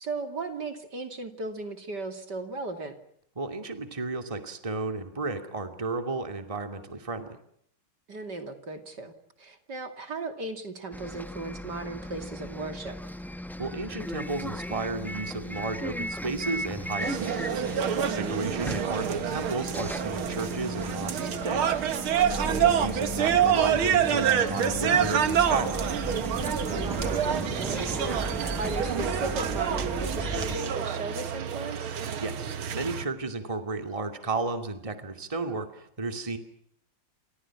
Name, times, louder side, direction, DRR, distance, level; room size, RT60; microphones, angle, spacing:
voice 1, 0.0-2.9 8.1-13.0 18.0-18.5 22.4-22.7 26.7-31.9, right 3 dB, 55° right, 7 dB, 3.3 m, -37 dB
voice 2, 3.4-7.4 13.6-17.6 18.1-21.7 22.3-26.0 32.2-36.4, right 3 dB, 15° right, 7 dB, 2.5 m, -33 dB
Bus, 10.9-30.6, equal, ahead, 0.6 m, -36 dB
sound 1, 17.0-33.1, right 8 dB, 80° right, 2.4 m, -27 dB
29.5 x 26.0 x 6.1 m, 0.70 s
omnidirectional pair, 2.3 m